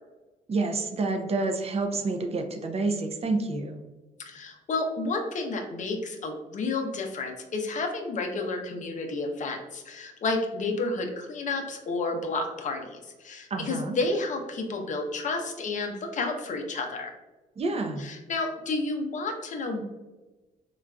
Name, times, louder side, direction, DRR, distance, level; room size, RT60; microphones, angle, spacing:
voice 1, 0.5-3.8 13.5-13.9 17.6-18.1, right 3 dB, 40° right, 5 dB, 0.5 m, -28 dB
voice 2, 4.3-17.1 18.0-19.8, left 3 dB, 50° left, 3 dB, 0.6 m, -31 dB
3.8 x 2.3 x 2.2 m, 1.1 s
supercardioid pair, 65°, 16 cm